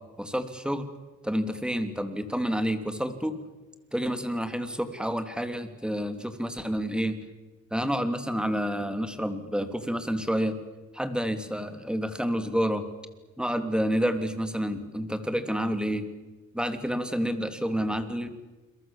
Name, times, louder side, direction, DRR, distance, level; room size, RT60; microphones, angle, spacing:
voice 1, 0.2-0.9 1.2-3.4 3.9-7.2 7.7-10.5 10.9-12.9 13.4-16.1 16.5-18.3, equal, 5° right, 8 dB, 3.2 m, -29 dB
29.0 x 23.0 x 7.5 m, 1.2 s
cardioid pair, 90°, 30 cm